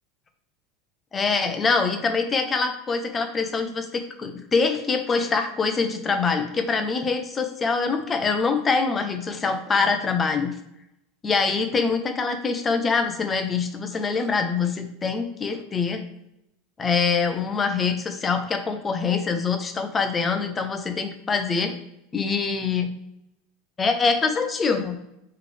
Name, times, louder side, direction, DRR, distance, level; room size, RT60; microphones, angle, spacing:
voice 1, 1.1-10.5 11.2-16.0 16.8-21.8 22.1-22.9 23.8-25.0, left 4 dB, 20° left, 6 dB, 0.7 m, -24 dB
4.8 x 3.2 x 3.3 m, 0.83 s
supercardioid pair, 125°, 0 cm